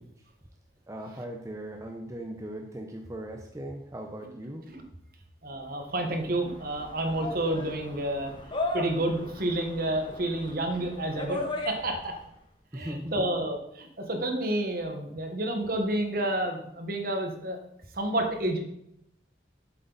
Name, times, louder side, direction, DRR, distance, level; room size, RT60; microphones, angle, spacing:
voice 1, 0.9-4.7 12.7-13.3, right 1 dB, 15° right, 2 dB, 0.6 m, -39 dB
voice 2, 5.4-8.3 8.7-12.1 12.7-17.6 17.9-18.6, right 1 dB, 50° right, 4 dB, 1.3 m, -30 dB
sound 1, 5.9-12.2, left 2 dB, 25° left, 1.0 m, -37 dB
7.9 x 7.6 x 4.0 m, 0.76 s
head